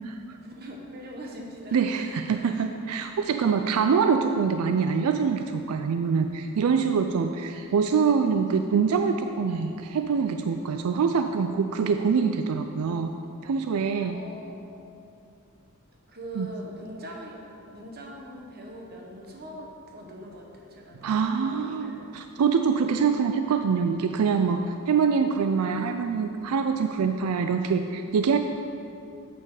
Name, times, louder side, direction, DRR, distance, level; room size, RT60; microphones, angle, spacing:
voice 1, 0.3-2.7 14.1-14.8 16.1-21.1 21.4-22.2, equal, 45° right, 0 dB, 1.1 m, -42 dB
voice 2, 1.7-13.1 13.4-14.2 16.4-16.5 21.0-28.4, right 6 dB, 80° right, 7 dB, 0.4 m, -25 dB
8.9 x 6.8 x 4.8 m, 2.7 s
head